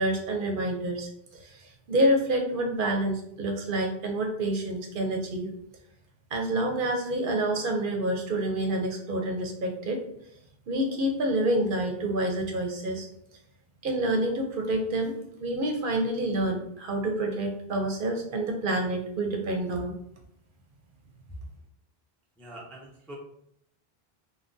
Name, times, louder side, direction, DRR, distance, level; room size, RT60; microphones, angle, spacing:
voice 1, 0.0-5.5 6.3-10.0 10.7-13.1 13.8-19.9, right 1 dB, 65° right, 2 dB, 0.7 m, -28 dB
voice 2, 22.4-23.2, equal, ahead, -3 dB, 0.4 m, -44 dB
3.5 x 2.2 x 2.6 m, 0.72 s
omnidirectional pair, 1.0 m